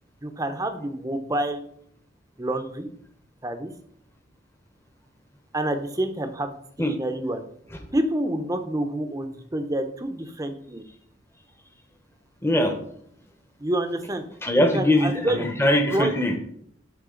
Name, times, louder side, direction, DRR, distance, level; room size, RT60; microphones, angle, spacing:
voice 1, 0.2-1.6 2.4-2.9 3.4-3.7 5.5-7.4 7.9-10.9 13.6-14.2 14.6-15.5 15.9-16.1, right 1 dB, 20° right, 8 dB, 0.6 m, -28 dB
voice 2, 12.4-12.8 14.4-16.4, left 1 dB, 15° left, 4 dB, 0.8 m, -21 dB
10.5 x 3.7 x 3.8 m, 0.66 s
head